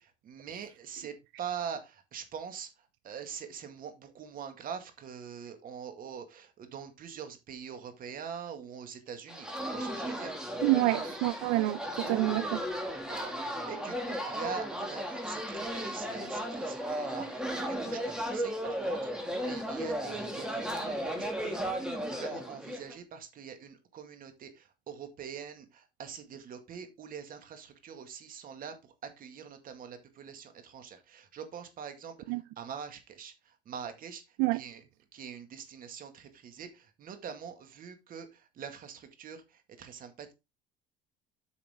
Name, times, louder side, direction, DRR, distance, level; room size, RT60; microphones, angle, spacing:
voice 1, 0.0-10.4 13.2-21.8 22.1-34.8 35.1-40.3, right 7 dB, 50° right, 2.1 m, -44 dB
sound 1, 9.3-22.9, equal, 5° right, 2.3 m, -35 dB
voice 2, 10.6-12.6 32.3-32.4 34.4-34.6, right 20 dB, 80° right, 0.4 m, -27 dB
8.8 x 5.8 x 3.7 m
cardioid pair, 115°, 19 cm